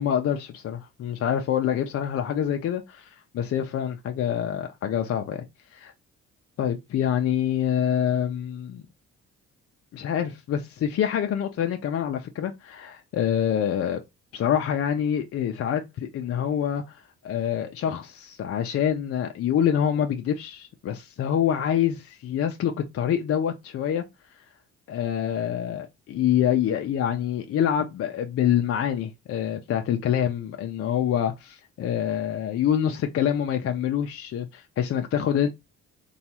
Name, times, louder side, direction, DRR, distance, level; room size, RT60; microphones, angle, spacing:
voice 1, 0.0-5.4 5.7-5.9 6.6-8.8 9.9-14.0 14.3-24.0 24.9-35.5, left 9 dB, 50° left, 0.4 m, -26 dB
3.0 x 2.3 x 2.8 m
cardioid pair, 90°, 30 cm